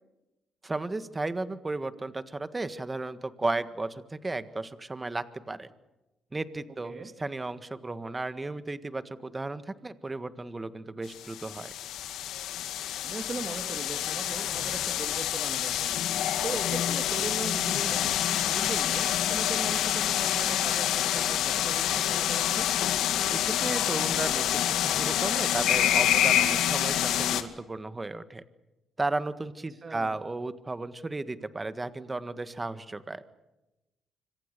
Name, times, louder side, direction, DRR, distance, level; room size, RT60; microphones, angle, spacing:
voice 1, 0.6-5.7 6.3-11.7 23.3-28.4 29.0-33.2, right 2 dB, 20° right, 12 dB, 1.6 m, -34 dB
sound 1, 11.1-27.4, left 11 dB, 85° left, 2.0 m, -27 dB
voice 2, 13.0-22.7 29.7-30.2, right 3 dB, 35° right, 6 dB, 2.4 m, -39 dB
25.5 x 25.0 x 6.9 m, 1.0 s
cardioid pair, 100°, 0 cm